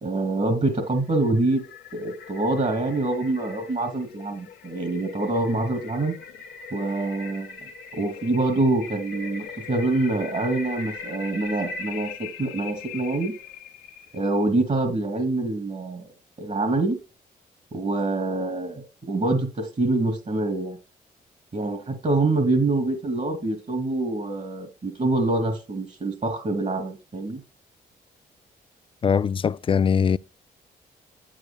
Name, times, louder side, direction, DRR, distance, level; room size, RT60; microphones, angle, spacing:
voice 1, 0.0-1.6 1.9-6.1 6.7-7.6 7.9-13.3 14.1-16.1 16.4-17.0 17.7-20.8 21.5-27.4, right 2 dB, 40° right, 2.5 m, -25 dB
sound 1, 1.0-14.4, left 5 dB, 80° left, 1.1 m, -40 dB
voice 2, 29.0-30.2, left 6 dB, 30° left, 0.3 m, -21 dB
8.9 x 8.3 x 2.2 m
supercardioid pair, 60°, 18 cm